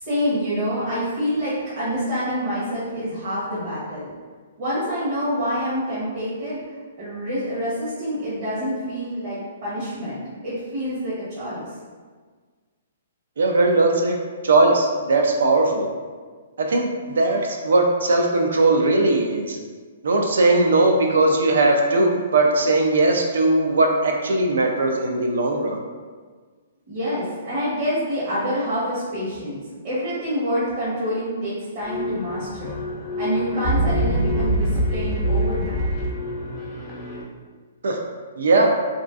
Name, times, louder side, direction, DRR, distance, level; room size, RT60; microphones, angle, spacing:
voice 1, 0.0-4.1 4.6-6.6 7.0-11.6 26.9-32.7 33.2-35.8, equal, 40° right, -11 dB, 0.9 m, -27 dB
voice 2, 13.4-14.2 14.4-15.9 16.6-19.6 20.0-25.8 37.8-38.0 38.4-38.7, right 2 dB, 90° right, 2 dB, 0.4 m, -19 dB
sound 1, 31.8-37.2, equal, 10° left, 0.4 m, -25 dB
2.4 x 2.3 x 2.3 m, 1.5 s
hypercardioid pair, 165°, 0 cm